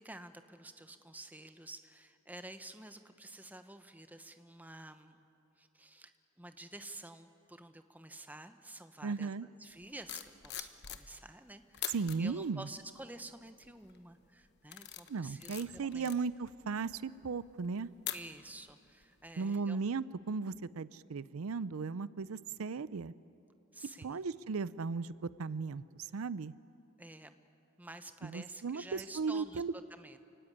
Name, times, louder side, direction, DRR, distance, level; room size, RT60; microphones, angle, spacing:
voice 1, 0.0-5.2 5.6-9.3 9.6-16.1 18.1-19.8 23.7-24.2 27.0-27.4 27.8-30.2, right 2 dB, 10° right, 9 dB, 0.9 m, -50 dB
voice 2, 9.0-9.5 11.9-12.6 15.1-17.9 19.4-23.1 24.0-26.5 28.2-29.7, right 4 dB, 85° right, 18 dB, 0.5 m, -36 dB
sound 1, 9.8-11.4 11.7-12.2 12.8-13.2 13.6-14.0 14.4-18.7 19.0-19.3, left 12 dB, 55° left, 1.1 m, -44 dB
28.0 x 16.5 x 10.0 m, 2.8 s
head